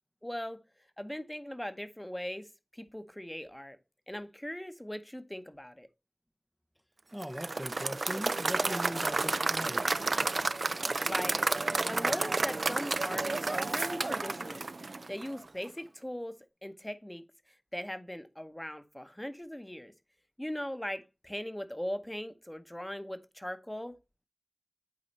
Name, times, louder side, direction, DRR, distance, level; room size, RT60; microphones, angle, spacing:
voice 1, 0.2-0.6 1.0-2.5 2.7-3.8 4.1-5.9 11.0-11.4 11.9-14.7 15.1-16.4 16.6-17.2 17.7-19.9 20.4-23.9, equal, 15° left, 0.9 m, -39 dB
voice 2, 7.1-10.0, equal, 5° right, 0.5 m, -40 dB
Applause / Crowd, 7.2-15.4, right 3 dB, 85° right, 0.4 m, -31 dB
8.5 x 4.1 x 4.1 m
wide cardioid pair, 50°, 0 cm